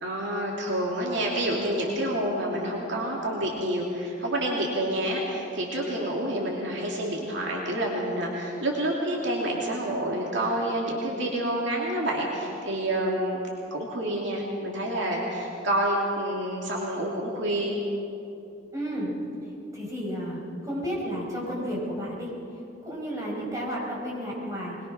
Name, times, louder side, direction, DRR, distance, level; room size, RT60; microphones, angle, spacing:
voice 1, 0.0-13.4 13.7-17.8, right 1 dB, 60° right, -3 dB, 3.0 m, -28 dB
voice 2, 18.7-19.2 19.7-22.3 22.8-24.8, equal, 15° right, -5 dB, 5.6 m, -32 dB
22.5 x 21.5 x 6.1 m, 2.8 s
head